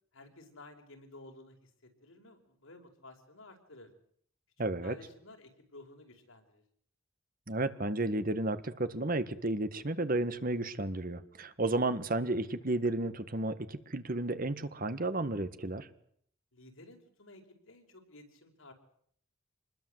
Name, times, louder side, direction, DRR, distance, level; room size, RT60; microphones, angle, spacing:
voice 1, 0.1-3.9 4.6-6.6 16.5-18.7, left 2 dB, 85° left, 4 dB, 5.1 m, -54 dB
voice 2, 4.6-4.9 7.5-15.9, right 2 dB, 45° right, 12 dB, 1.5 m, -32 dB
26.5 x 21.0 x 7.9 m, 0.66 s
head